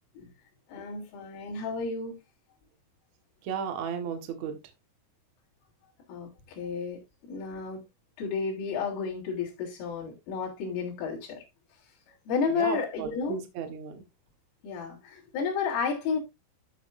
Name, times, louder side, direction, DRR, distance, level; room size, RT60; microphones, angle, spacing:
voice 1, 0.7-2.2 6.1-7.0 7.3-7.8 8.2-11.4 12.3-13.4 14.6-16.2, left 5 dB, 75° left, 5.8 m, -32 dB
voice 2, 3.5-4.6 12.5-14.0, right 7 dB, 85° right, 1.5 m, -34 dB
13.5 x 6.1 x 2.6 m
omnidirectional pair, 6.0 m